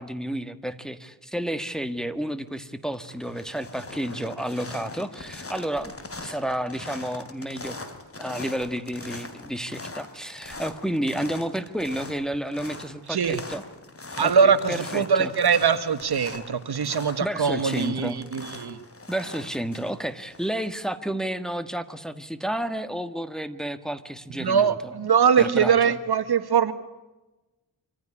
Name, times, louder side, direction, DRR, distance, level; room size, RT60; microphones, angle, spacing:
voice 1, 0.0-5.9 6.2-7.8 8.2-13.6 14.2-15.3 17.2-18.2 19.1-24.9 25.4-26.0, right 1 dB, ahead, 9 dB, 1.6 m, -31 dB
sound 1, 2.2-2.6 2.9-20.8, left 2 dB, 30° left, 3.5 m, -41 dB
voice 2, 13.1-13.4 14.2-18.8 24.4-26.7, right 6 dB, 60° right, 11 dB, 1.6 m, -22 dB
25.5 x 15.0 x 9.8 m, 1.1 s
cardioid pair, 75°, 43 cm